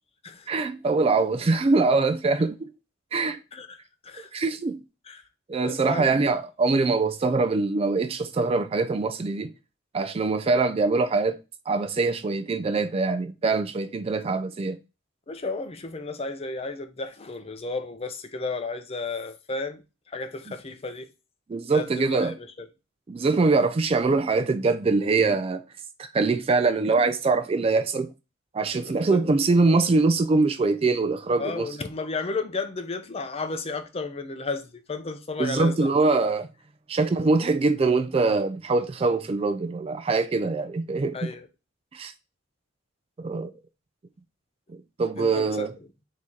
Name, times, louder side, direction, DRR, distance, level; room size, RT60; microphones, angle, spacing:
voice 1, 0.5-2.7 3.1-3.4 4.3-4.8 5.5-9.5 9.9-11.4 11.7-14.8 21.5-22.3 23.1-25.6 26.0-28.1 28.5-31.7 35.4-36.5 36.9-41.3 41.9-42.1 43.2-43.5 45.0-45.7, right 3 dB, 30° right, 0.3 m, -23 dB
voice 2, 5.6-6.2 15.3-19.8 20.1-21.1 21.7-22.7 28.8-29.3 31.4-35.9 41.1-41.5 45.2-45.7, left 3 dB, 30° left, 0.5 m, -33 dB
3.7 x 2.8 x 4.4 m
head